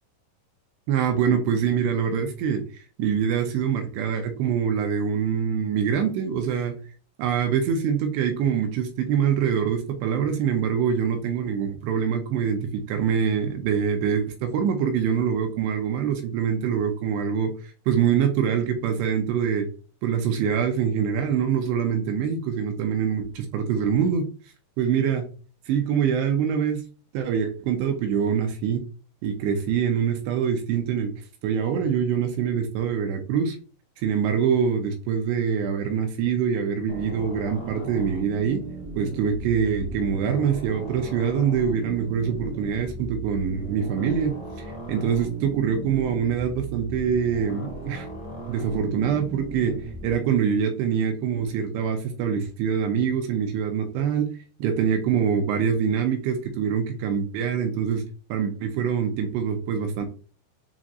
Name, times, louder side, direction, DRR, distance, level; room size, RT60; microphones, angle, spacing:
voice 1, 0.9-6.8 7.2-19.7 20.0-24.3 24.8-25.3 25.7-26.8 27.1-28.8 29.2-31.1 31.4-33.6 34.0-38.6 39.0-48.1 48.5-49.8 50.0-54.3 54.6-58.0 58.3-60.1, right 7 dB, 80° right, 5 dB, 2.6 m, -24 dB
sound 1, 36.9-50.2, right 2 dB, 60° left, 0.7 m, -37 dB
7.2 x 2.5 x 2.5 m, 0.38 s
omnidirectional pair, 5.3 m